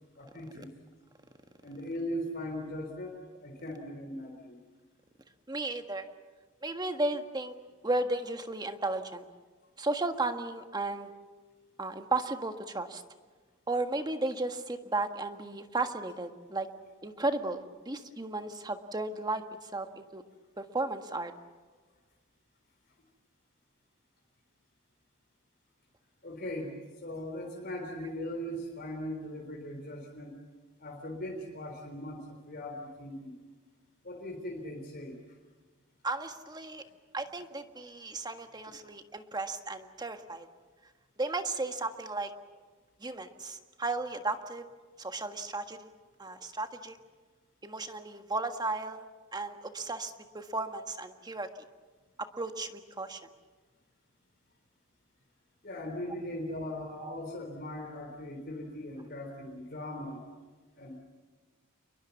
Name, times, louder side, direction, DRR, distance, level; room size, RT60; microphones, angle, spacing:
voice 1, 0.2-0.7 1.6-4.6 26.2-26.7 27.0-30.4 30.8-33.3 34.0-35.1 55.6-60.2 60.8-61.0, left 1 dB, 45° left, 1 dB, 3.8 m, -39 dB
voice 2, 5.5-6.1 6.6-7.5 7.8-9.2 9.8-11.1 11.8-13.0 13.7-16.7 17.0-20.2 20.6-21.3 36.0-36.8 37.1-40.5 41.2-42.3 43.0-44.6 45.0-45.9 46.2-47.0 47.6-49.1 49.3-51.5 52.4-53.2 57.0-57.2, right 2 dB, 20° right, 7 dB, 1.6 m, -34 dB
29.0 x 22.0 x 7.2 m, 1.4 s
head